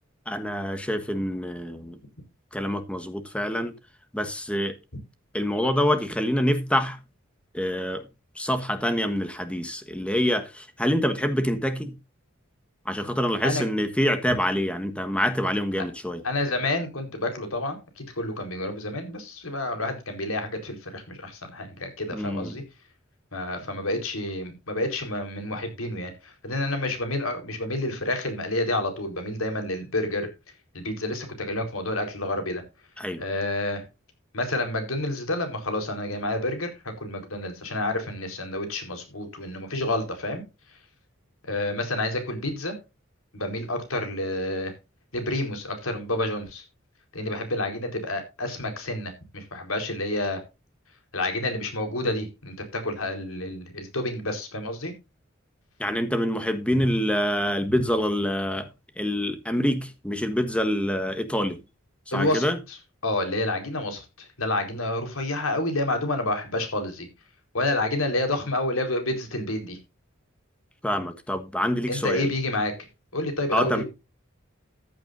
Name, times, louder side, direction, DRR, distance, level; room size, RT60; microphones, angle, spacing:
voice 1, 0.3-2.0 2.5-3.8 4.1-4.8 5.3-7.0 7.5-8.0 8.4-11.9 12.8-16.2 22.1-22.6 33.0-33.2 55.8-58.7 59.0-61.6 62.1-62.6 70.8-72.3 73.5-73.8, equal, 5° left, 1.4 m, -26 dB
voice 2, 16.2-22.6 23.3-30.3 30.7-32.6 33.2-33.8 34.3-40.4 41.4-42.8 43.3-44.7 45.1-46.6 47.1-50.4 51.1-54.9 62.1-62.8 63.0-67.1 67.5-69.8 71.9-72.9 73.1-73.8, left 2 dB, 85° left, 4.4 m, -29 dB
14.5 x 10.5 x 2.6 m
head